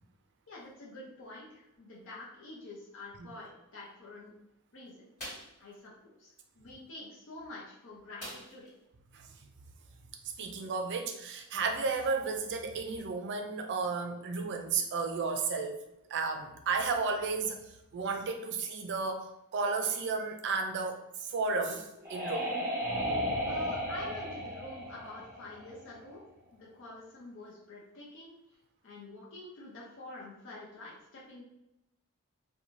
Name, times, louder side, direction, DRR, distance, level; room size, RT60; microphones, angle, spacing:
voice 1, 0.5-4.3 4.7-5.0 5.6-8.7 23.4-26.2 26.5-28.3 28.8-31.4, left 2 dB, 65° left, -5 dB, 0.6 m, -47 dB
sound 1, 5.2-5.6 8.2-8.8 9.1-9.2 9.6-9.8, equal, 40° left, 1.4 m, -44 dB
voice 2, 10.4-15.8 16.1-22.5, right 4 dB, 55° right, 4 dB, 0.4 m, -33 dB
sound 2, 21.5-26.1, equal, 10° right, 0.7 m, -35 dB
2.6 x 2.2 x 3.0 m, 0.87 s
head